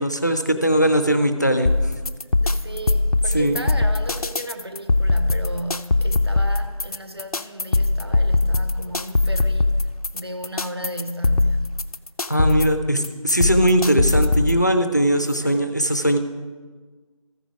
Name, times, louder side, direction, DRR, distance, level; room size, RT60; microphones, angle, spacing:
voice 1, 0.0-1.7 3.3-3.6 12.3-16.2, right 1 dB, 30° left, 0.5 m, -20 dB
sound 1, 1.7-14.6, left 2 dB, 85° left, 0.5 m, -21 dB
voice 2, 2.4-11.8 15.2-15.7, equal, 45° right, 0.8 m, -35 dB
14.0 x 5.2 x 4.8 m
figure-of-eight pair, 170°, 18 cm